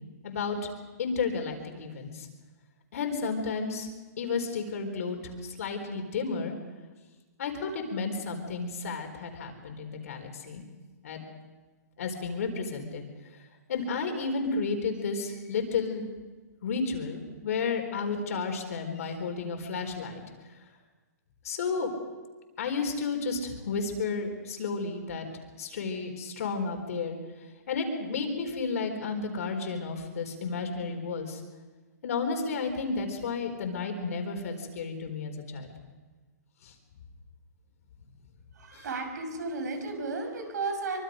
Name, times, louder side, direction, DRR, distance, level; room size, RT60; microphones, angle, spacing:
voice 1, 0.2-0.7 1.0-2.3 2.9-3.9 4.2-6.5 7.4-10.6 11.0-11.2 12.0-13.0 13.7-16.1 16.6-20.2 21.4-21.9 22.6-25.3 25.6-31.4 32.0-35.7 36.6-36.7 38.7-38.9, left 4 dB, 55° left, 4 dB, 4.2 m, -32 dB
voice 2, 38.6-41.0, right 3 dB, 80° right, 5 dB, 5.9 m, -33 dB
24.5 x 24.5 x 5.2 m, 1.3 s
hypercardioid pair, 170°, 9 cm